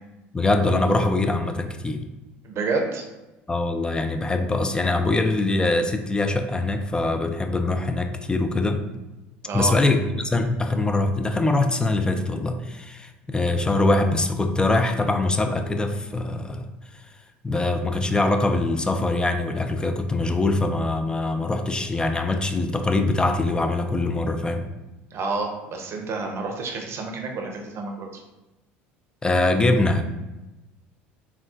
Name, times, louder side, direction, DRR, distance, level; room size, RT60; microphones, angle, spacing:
voice 1, 0.3-2.0 3.5-8.8 9.5-16.7 17.4-24.7 29.2-30.0, left 2 dB, 15° left, 6 dB, 0.3 m, -23 dB
voice 2, 2.4-3.0 9.4-9.8 25.1-28.2, right 3 dB, 45° right, 3 dB, 0.6 m, -29 dB
3.5 x 2.3 x 2.4 m, 1.0 s
hypercardioid pair, 75°, 6 cm